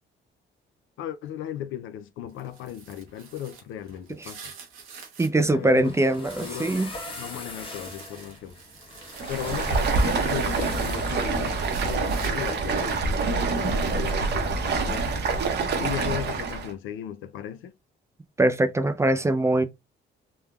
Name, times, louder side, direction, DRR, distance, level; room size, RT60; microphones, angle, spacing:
voice 1, 1.0-4.4 5.4-5.9 6.2-6.8 7.1-8.5 9.3-15.2 15.8-17.7, left 11 dB, 85° left, 0.5 m, -36 dB
sound 1, 2.3-5.4 5.8-10.7 11.0-12.8, right 6 dB, 85° right, 1.0 m, -48 dB
voice 2, 5.2-6.9 18.4-19.6, right 1 dB, 15° right, 0.4 m, -22 dB
sound 2, 5.5-12.3, left 2 dB, 25° left, 1.1 m, -41 dB
Stream, 9.1-16.7, right 4 dB, 60° right, 0.8 m, -26 dB
3.3 x 2.1 x 2.3 m
cardioid pair, 90°, 20 cm